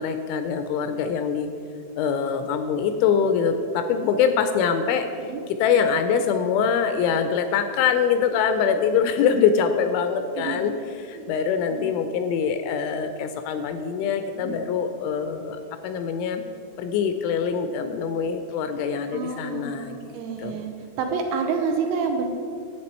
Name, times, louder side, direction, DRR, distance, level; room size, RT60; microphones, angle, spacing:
voice 1, 0.0-1.5 2.0-10.7 11.0-16.4 16.8-20.7, left 6 dB, 85° left, 8 dB, 2.8 m, -24 dB
voice 2, 10.4-10.7 11.1-11.3 11.7-11.9 14.4-14.5 19.1-22.3, right 5 dB, 85° right, 3 dB, 2.8 m, -29 dB
11.0 x 8.1 x 4.3 m, 2.5 s
omnidirectional pair, 5.6 m